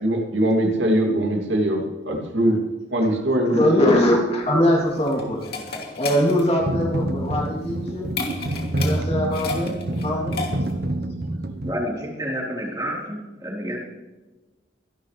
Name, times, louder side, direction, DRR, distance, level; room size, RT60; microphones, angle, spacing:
voice 1, 0.0-2.6 2.9-3.9, right 1 dB, 80° right, 2 dB, 2.6 m, -22 dB
voice 2, 3.5-5.4 6.0-8.1 8.7-10.4, left 1 dB, 35° left, -1 dB, 3.0 m, -22 dB
sound 1, 4.4-10.9, left 4 dB, 55° left, 2.7 m, -34 dB
sound 2, 6.6-11.7, right 1 dB, 55° right, 1.0 m, -27 dB
voice 3, 11.6-13.8, equal, 20° right, -2 dB, 3.8 m, -29 dB
25.5 x 11.5 x 3.3 m, 1.2 s
head